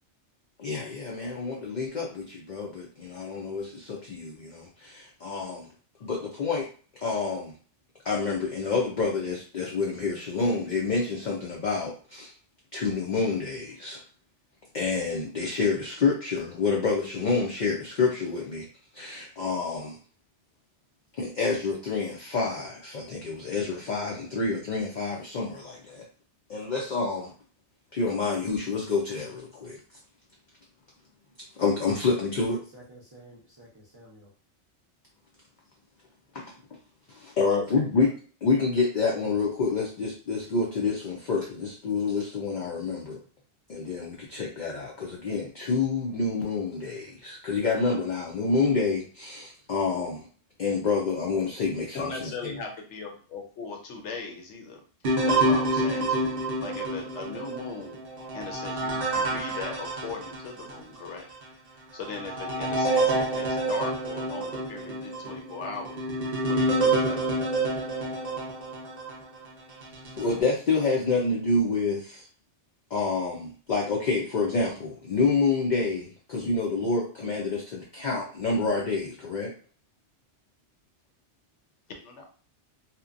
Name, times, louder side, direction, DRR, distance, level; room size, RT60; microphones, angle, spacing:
voice 1, 0.6-5.7 6.0-6.7 7.0-7.5 8.0-12.3 12.7-14.0 14.7-18.7 18.9-20.0 21.2-26.0 26.5-27.3 27.9-29.8 31.6-32.6 36.3-36.5 37.1-38.1 38.4-43.2 43.7-50.3 50.6-52.6 70.2-72.2 72.9-79.5, left 4 dB, 60° left, -2 dB, 0.5 m, -28 dB
voice 2, 32.7-34.3, right 1 dB, 25° right, -6 dB, 0.5 m, -50 dB
voice 3, 51.9-54.8 55.3-58.0 58.3-61.2 61.9-66.0 66.5-67.2 82.0-82.3, left 4 dB, 75° left, 2 dB, 0.9 m, -39 dB
sound 1, 55.0-60.8 61.3-61.4 62.0-69.2 69.8-70.4, right 2 dB, 60° right, 0.7 m, -28 dB
2.8 x 2.1 x 2.4 m, 0.41 s
omnidirectional pair, 1.2 m